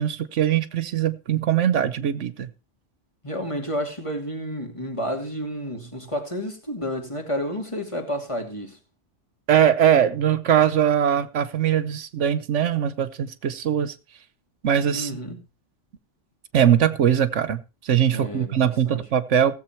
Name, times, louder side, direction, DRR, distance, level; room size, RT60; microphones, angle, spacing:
voice 1, 0.0-2.5 9.5-13.9 14.6-15.1 16.5-19.6, right 9 dB, 75° right, 1.2 m, -21 dB
voice 2, 3.2-8.8 14.9-15.4 18.1-19.0, equal, 25° left, 2.7 m, -30 dB
16.5 x 7.6 x 4.4 m
omnidirectional pair, 1.3 m